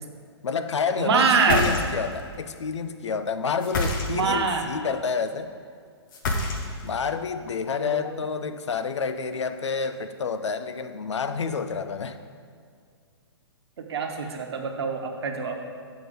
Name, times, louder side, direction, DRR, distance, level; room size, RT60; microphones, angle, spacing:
voice 1, 0.4-5.5 6.8-12.2, left 5 dB, 85° left, 10 dB, 0.6 m, -29 dB
voice 2, 1.0-1.6 4.1-4.7 7.8-8.0 13.9-15.6, right 5 dB, 65° right, 3 dB, 1.1 m, -24 dB
sound 1, 1.3-2.2 3.6-4.4 6.1-7.0, left 2 dB, 45° left, 1.1 m, -27 dB
7.8 x 4.9 x 5.2 m, 2.1 s
hypercardioid pair, 140°, 15 cm